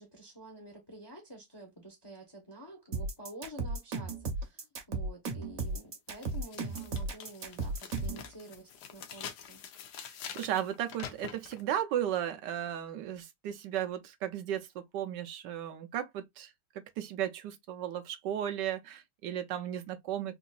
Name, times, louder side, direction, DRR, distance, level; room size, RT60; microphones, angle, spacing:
voice 1, 0.0-9.6, right 1 dB, 20° left, 0.7 m, -49 dB
sound 1, 2.9-8.3, right 3 dB, 55° right, 1.2 m, -35 dB
sound 2, 5.6-5.7 6.2-11.6, left 8 dB, 70° left, 1.2 m, -46 dB
voice 2, 10.3-16.5 16.7-20.3, right 10 dB, 75° right, 1.2 m, -35 dB
3.9 x 2.6 x 2.3 m
omnidirectional pair, 2.0 m